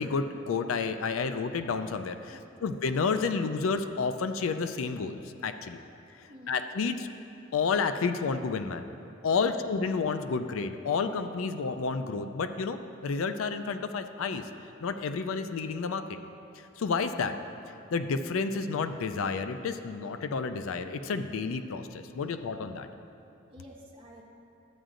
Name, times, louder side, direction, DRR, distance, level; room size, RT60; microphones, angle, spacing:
voice 1, 0.0-5.8 6.5-7.1 7.5-8.9 9.2-14.5 14.8-16.0 16.6-17.4 17.9-22.9, left 5 dB, 90° left, 9 dB, 0.4 m, -30 dB
voice 2, 2.3-2.7 6.3-6.7 9.4-9.6 23.5-24.2, left 1 dB, 25° right, -3 dB, 1.3 m, -50 dB
13.0 x 9.0 x 2.5 m, 2.8 s
head